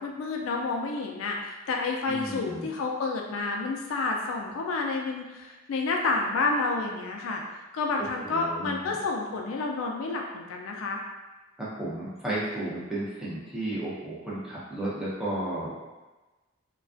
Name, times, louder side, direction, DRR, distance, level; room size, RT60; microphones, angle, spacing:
voice 1, 0.0-7.4 7.7-11.0, left 3 dB, 75° left, 0 dB, 0.3 m, -29 dB
voice 2, 2.1-2.7 8.0-8.9 11.6-15.9, right 1 dB, 5° right, -9 dB, 0.6 m, -33 dB
2.3 x 2.2 x 2.4 m, 1.2 s
head